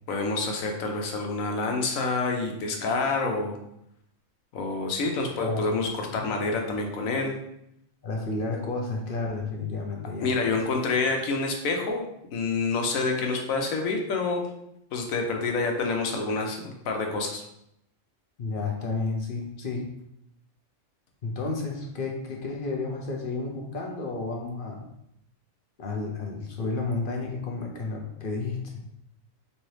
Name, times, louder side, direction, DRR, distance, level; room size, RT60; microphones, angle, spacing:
voice 1, 0.1-3.6 4.5-7.4 10.2-12.0 12.3-14.5 14.9-17.4, left 3 dB, 90° left, 2 dB, 1.1 m, -27 dB
voice 2, 8.0-10.6 18.4-19.9 21.2-24.8 25.8-28.8, left 3 dB, 50° left, 0 dB, 0.7 m, -31 dB
4.2 x 2.7 x 3.1 m, 0.78 s
omnidirectional pair, 1.4 m